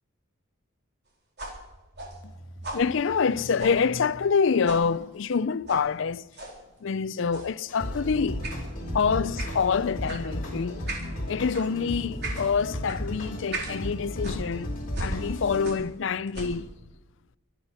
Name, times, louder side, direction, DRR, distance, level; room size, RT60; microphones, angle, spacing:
sound 1, 1.4-4.4 4.7-4.9 5.7-5.9 6.3-6.6 7.3-7.6 8.4-8.6 9.4-9.6 10.1-10.2 10.9-11.1 11.5-11.7 12.2-12.5 12.9-13.0 13.5-13.8 14.2-16.0 16.3-16.7, right 2 dB, 50° right, 4.0 m, -37 dB
voice 1, 2.7-6.3 6.8-8.4 8.9-10.8 11.3-14.7 15.0-16.7, left 5 dB, 60° left, 0.4 m, -26 dB
sound 2, 7.7-15.7, left 1 dB, 40° left, 5.1 m, -34 dB
24.5 x 9.7 x 5.6 m
head